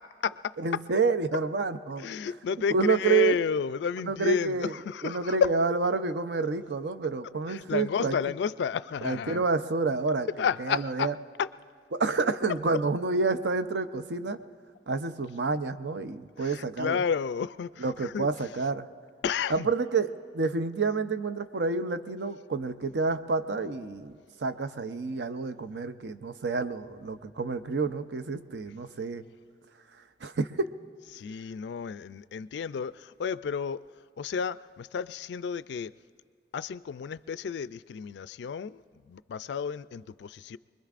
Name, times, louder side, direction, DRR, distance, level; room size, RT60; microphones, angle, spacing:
voice 1, 0.0-0.8 2.0-5.7 7.5-9.4 10.4-11.1 11.4-11.5 16.4-18.3 19.2-19.7 31.1-33.8 34.2-35.9 36.5-40.6, left 6 dB, 70° left, 0.3 m, -31 dB
voice 2, 0.6-2.1 2.7-3.4 4.0-4.7 5.0-8.1 9.0-10.3 10.7-11.1 11.9-14.4 14.9-17.0 17.8-18.9 19.5-29.2 30.2-30.7, right 4 dB, 70° right, 0.6 m, -29 dB
24.5 x 21.5 x 2.5 m
head